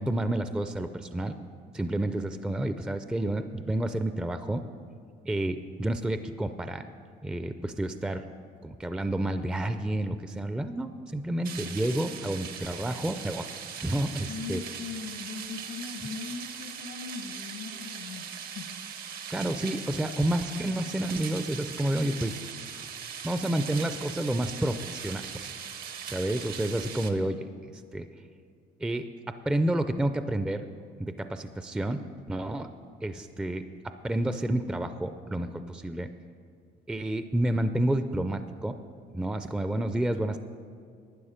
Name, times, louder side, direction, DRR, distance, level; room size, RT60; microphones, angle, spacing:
voice 1, 0.0-1.3 1.7-4.6 5.2-6.8 7.2-8.3 8.6-13.5 13.8-14.6 19.3-22.4 23.2-25.3 26.1-27.4 27.9-28.1 28.8-30.7 31.0-32.0 32.3-32.7 33.0-36.1 36.9-38.8 39.1-40.4, right 1 dB, 5° right, 9 dB, 0.4 m, -30 dB
sound 1, 11.4-27.1, right 7 dB, 65° right, 1.0 m, -40 dB
voice 2, 14.3-18.3 18.5-18.7, left 5 dB, 85° left, 3 dB, 1.3 m, -39 dB
11.5 x 9.6 x 5.0 m, 2.2 s
cardioid pair, 110°, 17 cm